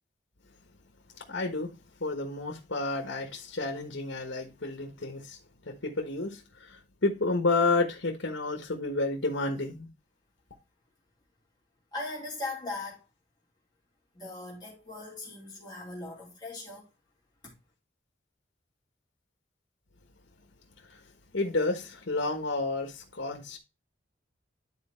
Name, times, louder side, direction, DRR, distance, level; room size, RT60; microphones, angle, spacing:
voice 1, 1.2-1.7 2.0-9.9 20.8-21.0 21.3-23.6, left 3 dB, 75° left, 1.3 m, -31 dB
voice 2, 11.9-13.0 14.1-16.9 17.4-17.5, left 2 dB, 20° left, 2.5 m, -39 dB
10.5 x 4.2 x 4.3 m
head